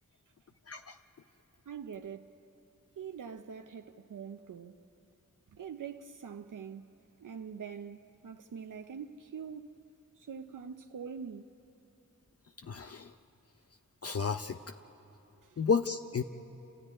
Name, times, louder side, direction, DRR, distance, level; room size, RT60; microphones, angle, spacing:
voice 1, 0.7-1.0 12.6-13.1 14.0-14.6 15.6-16.2, left 5 dB, 50° left, 0.6 m, -32 dB
voice 2, 1.7-2.4 3.0-4.8 5.5-6.9 7.2-9.8 10.2-11.4 15.4-15.6, right 7 dB, 85° right, 0.6 m, -44 dB
30.0 x 13.5 x 9.8 m
wide cardioid pair, 85°, 31 cm